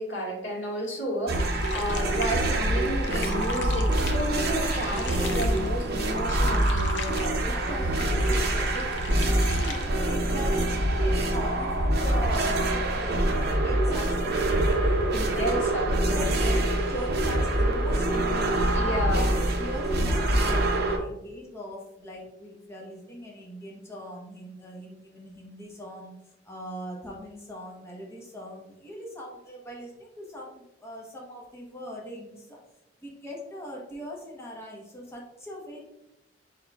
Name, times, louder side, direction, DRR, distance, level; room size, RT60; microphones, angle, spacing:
voice 1, 0.0-7.7 15.1-16.3 18.7-19.3, equal, 90° left, -3 dB, 1.6 m, -32 dB
sound 1, 1.3-21.0, right 1 dB, 55° right, 0.6 m, -25 dB
sound 2, 1.6-9.9, left 5 dB, 65° left, 0.5 m, -41 dB
voice 2, 7.4-15.0 15.4-16.6 16.9-18.4 18.7-26.1 26.4-32.6 33.0-35.9, equal, 15° left, -3 dB, 0.9 m, -41 dB
4.5 x 4.3 x 2.3 m, 0.89 s
head